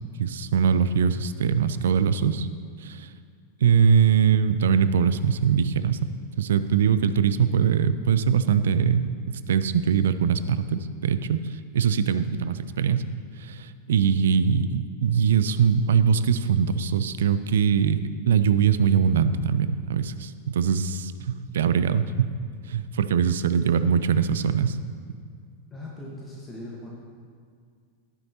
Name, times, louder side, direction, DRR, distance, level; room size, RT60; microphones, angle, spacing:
voice 1, 0.2-2.5 2.8-3.1 3.6-6.1 6.4-13.0 13.4-22.3 22.7-24.8, right 7 dB, 60° right, 13 dB, 0.4 m, -22 dB
voice 2, 25.7-26.9, left 1 dB, 15° left, -4 dB, 1.5 m, -39 dB
12.5 x 10.5 x 2.9 m, 2.2 s
figure-of-eight pair, 90°, 0 cm